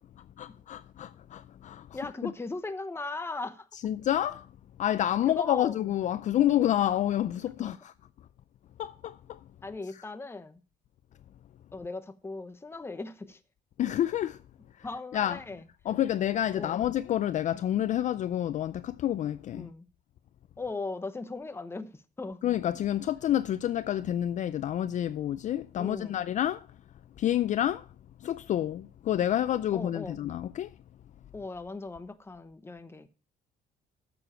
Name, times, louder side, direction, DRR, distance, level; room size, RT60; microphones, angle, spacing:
voice 1, 0.2-1.9 2.2-2.3 3.8-4.5 4.8-7.9 8.8-9.4 13.8-14.4 14.7-14.9 15.1-15.4 15.9-19.7 22.4-26.7 27.2-27.9 28.2-30.7, left 11 dB, 45° left, 0.4 m, -29 dB
voice 2, 1.9-3.7 5.3-5.8 7.6-7.7 9.6-10.6 11.7-13.4 14.8-15.6 16.5-16.8 19.5-19.9 20.6-22.4 25.8-26.2 29.7-30.2 31.3-33.1, left 3 dB, 15° left, 0.9 m, -38 dB
9.4 x 7.1 x 4.3 m
cardioid pair, 110°, 17 cm